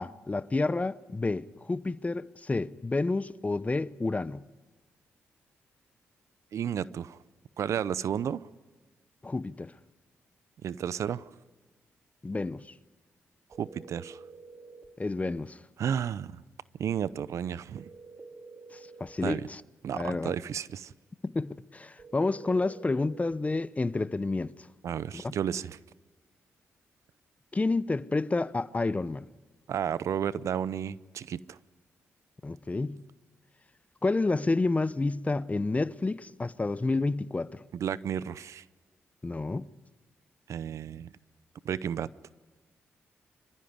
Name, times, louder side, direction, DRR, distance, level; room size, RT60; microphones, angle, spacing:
voice 1, 0.0-4.4 9.2-9.7 12.2-12.6 15.0-15.6 19.0-19.6 19.9-20.3 21.2-24.5 25.1-25.2 27.5-29.3 32.4-33.0 34.0-37.6 39.2-39.7, left 3 dB, 25° left, 0.9 m, -29 dB
voice 2, 6.5-7.2 7.6-8.4 10.6-11.3 13.6-14.2 15.8-16.4 16.8-17.9 19.2-19.5 19.8-20.9 24.8-25.8 29.7-31.6 37.7-38.6 40.5-41.1 41.6-42.1, right 8 dB, 70° right, 0.7 m, -32 dB
sound 1, 13.5-14.9 17.7-19.2 22.0-23.4, right 4 dB, 40° right, 2.7 m, -49 dB
25.5 x 15.0 x 9.6 m
supercardioid pair, 50°, 5 cm